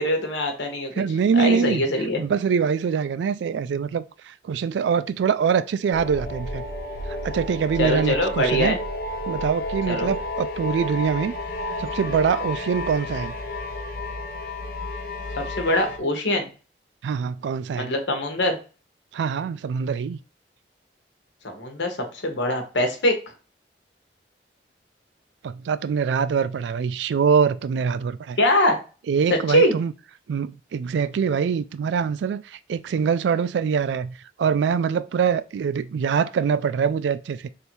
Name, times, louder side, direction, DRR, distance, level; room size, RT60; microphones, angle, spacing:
voice 1, 0.0-0.9 1.3-2.2 7.8-8.8 9.9-10.1 15.3-16.5 17.8-18.6 21.4-23.1 28.4-28.8 29.3-29.7, left 1 dB, 90° left, 1.1 m, -23 dB
voice 2, 1.0-1.8 2.2-6.6 7.2-8.7 9.3-11.3 11.8-13.3 17.0-17.9 19.1-20.2 25.4-28.4 29.1-29.9 30.3-37.5, right 6 dB, 80° right, 0.3 m, -24 dB
sound 1, 5.9-16.0, left 1 dB, 55° left, 0.6 m, -31 dB
3.4 x 2.7 x 4.4 m
head